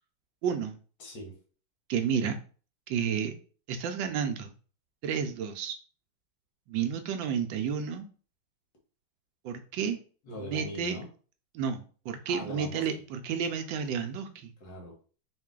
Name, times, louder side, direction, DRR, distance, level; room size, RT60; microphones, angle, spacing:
voice 1, 0.4-0.8 1.9-2.4 2.9-3.3 3.7-4.5 5.0-5.8 6.7-8.1 9.4-10.0 10.4-11.0 11.5-14.5, right 7 dB, 80° right, 7 dB, 1.3 m, -31 dB
voice 2, 1.0-1.4 10.2-11.1 12.2-12.9 14.6-15.0, left 1 dB, 70° left, 0 dB, 1.9 m, -40 dB
3.9 x 2.6 x 3.7 m, 0.39 s
omnidirectional pair, 2.1 m